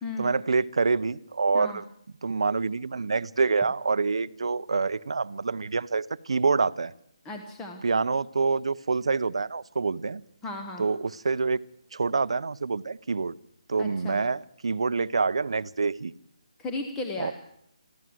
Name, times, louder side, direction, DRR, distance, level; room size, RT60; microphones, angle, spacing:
voice 1, 0.2-1.8 2.2-6.9 7.8-10.2 10.8-11.6 11.9-13.4 13.7-16.1 17.2-17.3, right 4 dB, 60° right, 16 dB, 0.7 m, -26 dB
voice 2, 7.2-7.8 10.4-10.8 13.8-14.2 16.6-17.3, left 2 dB, 5° left, 3 dB, 0.8 m, -35 dB
24.0 x 14.0 x 7.8 m, 0.76 s
hypercardioid pair, 180°, 3 cm